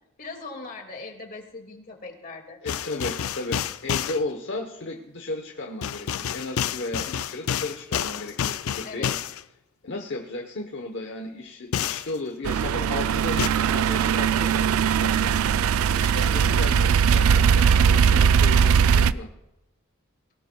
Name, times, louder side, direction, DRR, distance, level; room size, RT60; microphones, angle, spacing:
voice 1, 0.2-2.6 8.8-9.1 16.6-17.1, left 3 dB, 45° left, 3 dB, 2.1 m, -40 dB
voice 2, 2.6-9.2 9.8-15.4 15.9-19.3, left 2 dB, 60° left, 3 dB, 1.0 m, -35 dB
sound 1, 2.7-4.2 5.8-9.4 11.7-12.1 13.4-13.5, left 9 dB, 80° left, 0.4 m, -29 dB
sound 2, 12.4-19.1, right 7 dB, 80° right, 0.4 m, -20 dB
20.5 x 18.0 x 2.3 m, 0.91 s
head